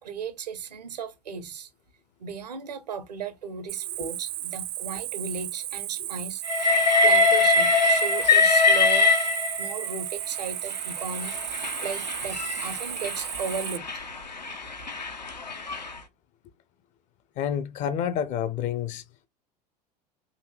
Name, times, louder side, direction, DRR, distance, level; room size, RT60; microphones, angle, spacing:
voice 1, 0.0-1.7 2.2-6.4 7.0-9.1 9.6-11.4 11.8-14.0, right 5 dB, 75° right, 0.8 m, -35 dB
Cricket, 3.7-13.8, right 14 dB, 35° right, 0.4 m, -34 dB
Train, 6.5-9.9 10.7-16.0, left 3 dB, 85° left, 0.6 m, -23 dB
voice 2, 17.4-19.0, left 9 dB, 35° left, 0.5 m, -29 dB
3.9 x 2.7 x 3.0 m
figure-of-eight pair, 75°, 21 cm